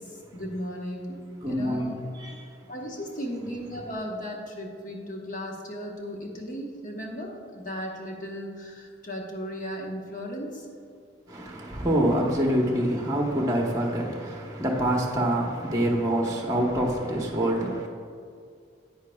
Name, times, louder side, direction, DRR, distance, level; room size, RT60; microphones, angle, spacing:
voice 1, 0.0-2.0 2.7-10.7, equal, 40° left, 1.1 m, -36 dB
voice 2, 1.4-2.5 11.3-17.9, right 1 dB, 15° right, 1.0 m, -26 dB
10.0 x 9.2 x 2.3 m
head